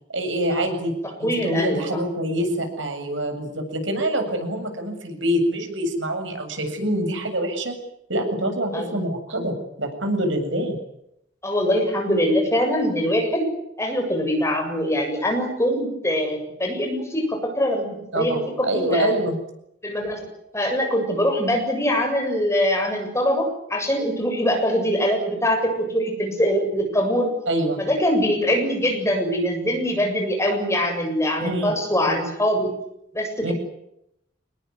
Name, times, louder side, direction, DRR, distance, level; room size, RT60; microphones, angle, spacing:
voice 1, 0.1-0.9 1.2-7.7 8.1-10.8 18.1-19.4 27.5-27.8 31.4-31.7 32.0-32.1 33.4-33.5, right 1 dB, 85° right, 5 dB, 7.6 m, -25 dB
voice 2, 1.2-2.0 8.7-9.0 11.4-13.5 13.8-19.2 19.8-20.3 20.5-27.3 27.8-32.7 33.1-33.5, equal, 15° left, 3 dB, 7.5 m, -23 dB
27.0 x 20.5 x 9.7 m, 0.80 s
head